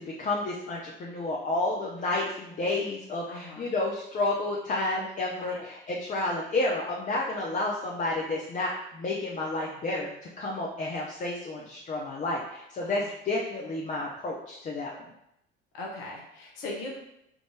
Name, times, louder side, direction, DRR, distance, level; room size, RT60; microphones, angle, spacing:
voice 1, 0.0-10.1 10.4-15.0, left 2 dB, 25° left, -2 dB, 0.5 m, -30 dB
voice 2, 3.3-3.7 5.4-5.6 12.8-13.1 15.7-17.0, left 2 dB, 70° left, -1 dB, 0.9 m, -39 dB
3.5 x 2.5 x 3.2 m, 0.81 s
figure-of-eight pair, 55°, 30 cm